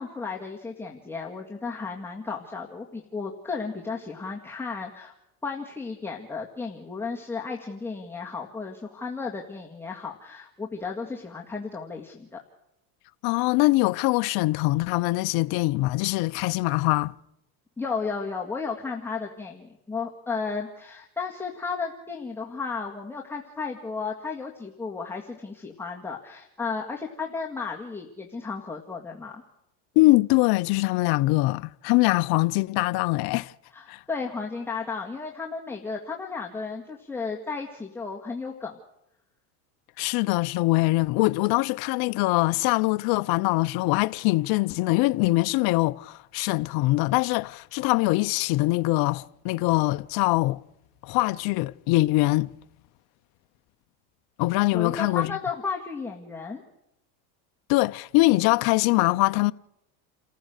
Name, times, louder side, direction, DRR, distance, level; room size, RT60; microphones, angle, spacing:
voice 1, 0.0-5.1 5.4-12.4 17.8-29.4 33.7-38.8 54.7-56.6, left 4 dB, 5° left, 1.9 m, -34 dB
voice 2, 13.2-17.1 30.0-33.5 33.9-34.0 40.0-50.6 51.0-52.5 54.4-55.3 57.7-59.5, left 21 dB, 55° left, 0.7 m, -23 dB
29.0 x 14.5 x 6.6 m
supercardioid pair, 125°, 45 cm